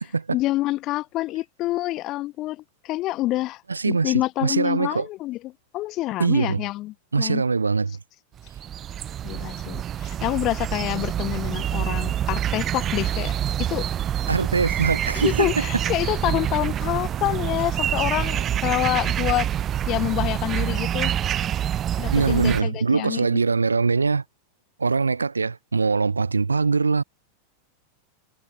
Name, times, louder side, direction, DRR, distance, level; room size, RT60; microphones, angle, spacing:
voice 1, 0.3-5.4 5.7-7.4 9.2-13.9 15.1-19.5 19.9-21.1 22.0-23.4, left 17 dB, 35° left, 7.2 m, -27 dB
voice 2, 3.7-4.1 4.4-5.1 6.2-6.6 7.1-8.0 14.3-15.5 22.1-24.2 24.8-27.0, right 4 dB, 75° right, 1.2 m, -22 dB
sound 1, 8.4-22.6, right 10 dB, 30° right, 6.4 m, -26 dB
figure-of-eight pair, 90°, 0 cm